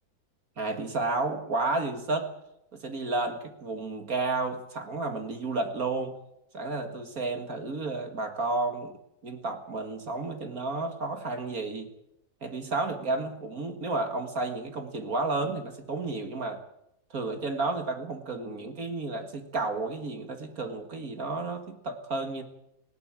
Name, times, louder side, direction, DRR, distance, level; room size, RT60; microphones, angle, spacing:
voice 1, 0.6-2.3 2.7-6.2 6.5-9.0 9.2-11.9 12.4-16.6 17.1-22.4, right 3 dB, 50° right, 6 dB, 2.2 m, -31 dB
19.5 x 17.0 x 8.9 m, 0.82 s
omnidirectional pair, 2.0 m